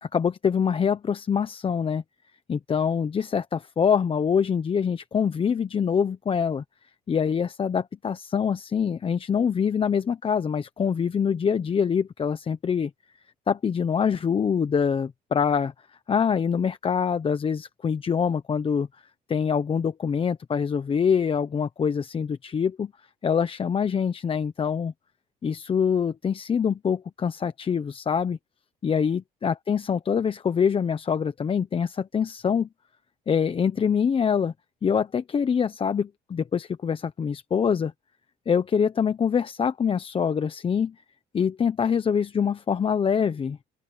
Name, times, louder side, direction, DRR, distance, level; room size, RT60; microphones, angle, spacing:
voice 1, 0.0-2.0 2.5-6.6 7.1-12.9 13.5-15.7 16.1-18.9 19.3-22.9 23.2-24.9 25.4-28.4 28.8-32.7 33.3-34.5 34.8-37.9 38.5-40.9 41.3-43.6, left 7 dB, 30° left, 0.9 m, -25 dB
open air
cardioid pair, 110°, 17 cm